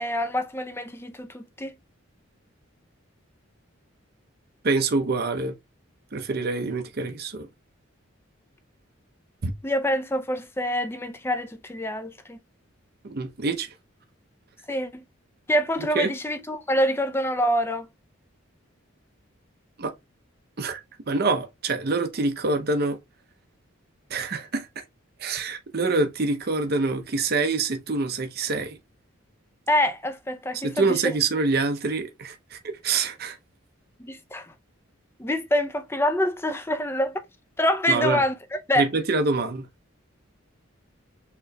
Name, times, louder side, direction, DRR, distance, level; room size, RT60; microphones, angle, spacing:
voice 1, 0.0-1.7 9.6-12.4 14.7-15.0 15.5-17.9 29.7-31.0 34.0-34.5 35.2-37.1 37.6-38.9, equal, 10° left, 0.5 m, -26 dB
voice 2, 4.6-5.5 6.1-7.5 9.4-9.5 13.0-13.7 15.9-16.1 19.8-19.9 20.6-20.8 21.1-23.0 24.1-24.7 25.2-28.8 30.5-33.4 37.9-38.2 38.8-39.7, right 3 dB, 50° right, 0.6 m, -26 dB
6.4 x 3.0 x 2.2 m
head